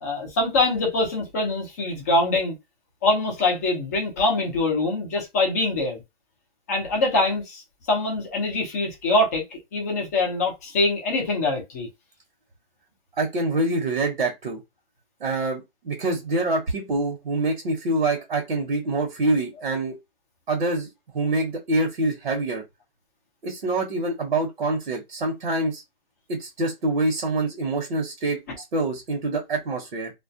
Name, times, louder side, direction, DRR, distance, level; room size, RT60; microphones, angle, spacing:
voice 1, 0.0-2.5 3.0-6.0 6.7-11.9, left 2 dB, 15° left, 0.5 m, -24 dB
voice 2, 13.2-14.6 15.2-20.0 20.5-22.6 23.4-25.8 26.3-28.4 28.7-30.1, right 2 dB, 70° right, 1.0 m, -25 dB
2.3 x 2.1 x 2.6 m
hypercardioid pair, 160°, 30 cm